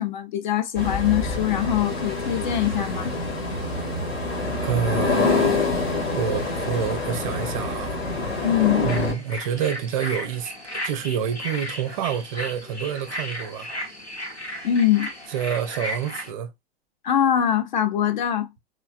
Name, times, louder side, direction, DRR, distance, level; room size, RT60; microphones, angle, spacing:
voice 1, 0.0-3.1 8.4-8.9 14.6-15.1 17.0-18.5, left 10 dB, 45° left, 0.4 m, -23 dB
sound 1, 0.8-9.1, left 3 dB, 65° left, 1.1 m, -26 dB
voice 2, 4.6-5.5 6.1-8.0 8.8-10.5 10.8-13.7 15.3-16.5, right 8 dB, 35° right, 0.4 m, -27 dB
sound 2, 8.9-16.3, equal, 80° left, 1.0 m, -34 dB
3.0 x 2.1 x 2.4 m
figure-of-eight pair, 100°, 33 cm